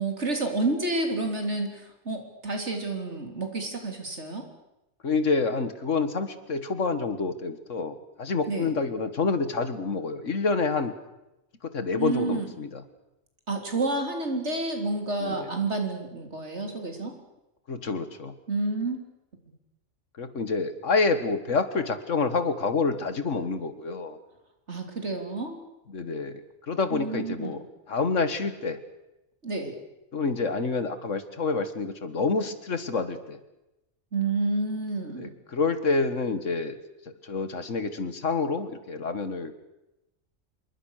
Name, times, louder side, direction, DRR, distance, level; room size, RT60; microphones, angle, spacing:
voice 1, 0.0-4.4 8.5-8.7 12.0-12.5 13.5-17.1 18.5-19.0 24.7-25.6 26.9-27.6 29.4-29.8 34.1-35.3, right 3 dB, 60° right, 4 dB, 3.9 m, -29 dB
voice 2, 5.0-10.9 11.6-12.8 15.2-15.5 17.7-18.3 20.2-24.2 25.9-28.8 30.1-33.4 35.2-36.8 37.2-39.5, left 4 dB, 70° left, 11 dB, 2.1 m, -28 dB
26.5 x 22.5 x 6.6 m, 0.94 s
omnidirectional pair, 1.3 m